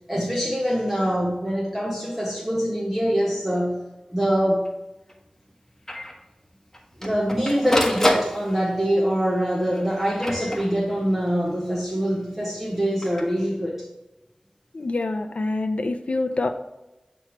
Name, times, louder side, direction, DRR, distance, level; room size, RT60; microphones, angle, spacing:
voice 1, 0.1-3.8 4.1-4.7 7.0-13.8, equal, 15° right, -2 dB, 0.9 m, -24 dB
Printer, 4.2-4.3 4.6-4.7 5.1-5.2 5.9-6.1 6.7-8.9 9.7-11.1 12.8-13.2, left 1 dB, 15° left, 1.1 m, -27 dB
voice 2, 14.7-16.5, left 2 dB, 75° left, 6 dB, 0.5 m, -26 dB
7.7 x 3.1 x 4.5 m, 1.0 s
wide cardioid pair, 65°, 2 cm